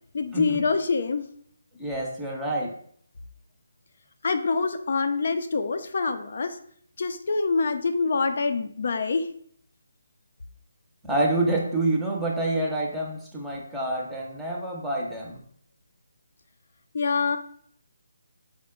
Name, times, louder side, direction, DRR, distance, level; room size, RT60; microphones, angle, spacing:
voice 1, 0.1-1.3 4.2-6.6 7.0-9.3 16.9-17.4, left 4 dB, 55° left, 7 dB, 0.5 m, -25 dB
voice 2, 1.8-2.7 11.0-15.4, right 2 dB, 5° right, -3 dB, 0.6 m, -27 dB
5.0 x 2.1 x 3.6 m, 0.62 s
figure-of-eight pair, 160°, 0 cm